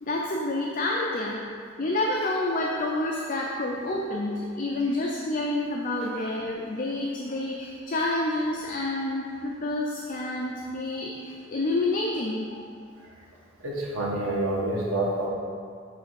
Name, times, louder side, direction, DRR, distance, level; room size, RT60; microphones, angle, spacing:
voice 1, 0.0-1.4 1.8-12.6, left 2 dB, 45° left, -2 dB, 0.6 m, -28 dB
voice 2, 13.6-15.3, right 1 dB, 85° right, -3 dB, 1.4 m, -27 dB
7.5 x 3.3 x 6.4 m, 2.2 s
head